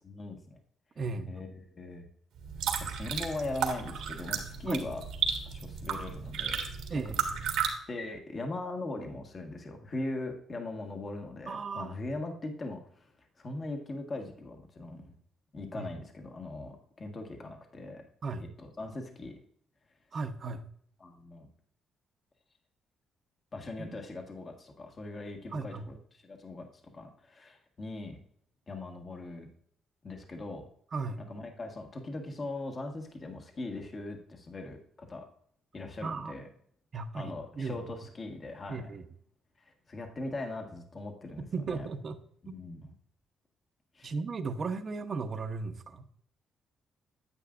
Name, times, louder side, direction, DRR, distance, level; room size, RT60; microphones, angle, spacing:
voice 1, 0.0-0.6 1.3-2.1 2.8-5.0 5.4-6.6 7.9-13.1 13.4-15.1 15.5-18.0 18.4-19.3 21.0-21.5 23.5-28.2 28.7-29.5 30.0-30.7 31.3-34.8 35.1-35.3 35.7-36.5 37.1-38.9 39.6-41.9 42.4-42.9 43.9-44.1, left 2 dB, 35° left, 3 dB, 1.5 m, -40 dB
voice 2, 1.0-1.3 4.7-4.8 6.9-7.2 11.5-12.0 15.7-15.9 18.2-18.5 20.1-20.6 23.8-24.0 25.5-25.9 30.9-31.2 36.0-36.4 36.9-37.8 38.7-39.0 41.4-42.2 42.5-42.6 44.0-46.0, right 4 dB, 45° right, 7 dB, 0.9 m, -36 dB
sound 1, 2.4-7.7, right 7 dB, 85° right, 1.6 m, -33 dB
9.8 x 8.5 x 2.5 m, 0.64 s
cardioid pair, 90°, 0 cm